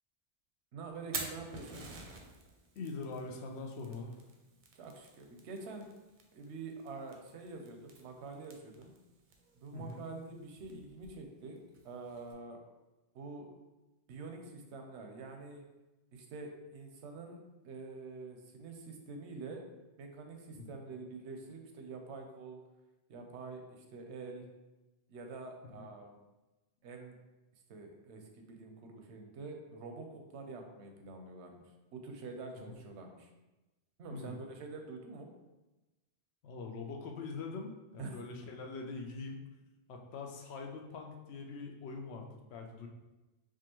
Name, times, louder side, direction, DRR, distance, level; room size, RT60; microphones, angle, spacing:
voice 1, 0.7-1.9 4.7-5.9 6.3-8.9 9.6-12.6 13.1-13.5 14.1-15.6 16.1-17.4 17.6-19.6 20.0-22.6 23.1-24.4 25.1-26.2 26.8-27.2 27.7-31.6 31.9-33.3 34.0-35.3 38.0-38.2, right 3 dB, 90° right, 3 dB, 0.9 m, -46 dB
Fire, 0.9-12.3, right 4 dB, 55° right, 0.6 m, -50 dB
voice 2, 2.8-4.2 9.7-10.0 20.6-20.7 25.8-25.9 34.1-34.4 36.4-39.4 39.9-42.9, left 4 dB, 75° left, 2 dB, 0.8 m, -43 dB
4.6 x 2.4 x 2.9 m, 1.1 s
omnidirectional pair, 1.1 m